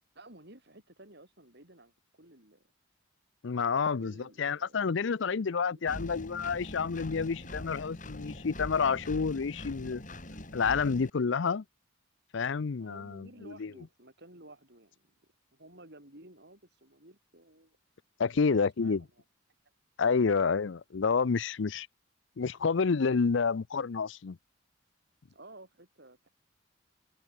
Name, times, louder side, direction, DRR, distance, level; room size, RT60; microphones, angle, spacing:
voice 1, 0.2-2.6 3.7-5.4 5.7-6.0 12.7-15.2 15.5-17.8 18.2-19.2 20.0-20.3 25.3-26.3, right 1 dB, 55° right, 7.1 m, -55 dB
voice 2, 3.4-4.1 4.4-10.0 10.5-11.6 12.3-13.3 13.6-13.7 18.2-19.0 20.0-21.9 22.4-24.4, left 5 dB, 60° left, 0.5 m, -29 dB
Engine, 5.9-11.1, left 1 dB, 40° left, 7.3 m, -43 dB
head